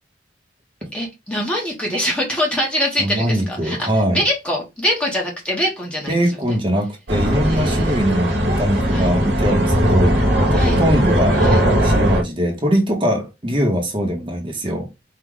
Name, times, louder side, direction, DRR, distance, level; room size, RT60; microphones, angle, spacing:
voice 1, 0.9-6.2 6.4-6.6 7.4-8.0 8.9-9.1 10.5-10.8 11.4-11.6, equal, 5° left, 1.1 m, -24 dB
voice 2, 3.0-4.2 6.1-14.9, equal, 30° right, 1.1 m, -21 dB
sound 1, 7.1-12.2, equal, 70° right, 1.2 m, -18 dB
4.6 x 2.5 x 3.8 m
head